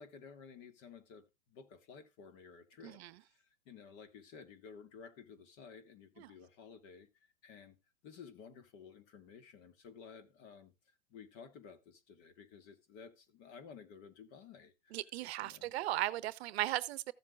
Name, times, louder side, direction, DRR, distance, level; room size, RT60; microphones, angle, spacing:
voice 1, 0.0-3.0 3.3-7.1 7.4-7.8 8.0-10.7 11.1-15.0 15.4-15.7, left 6 dB, 45° left, 1.9 m, -54 dB
voice 2, 14.9-17.1, right 15 dB, 60° right, 0.8 m, -37 dB
14.5 x 7.5 x 2.3 m
hypercardioid pair, 110°, 37 cm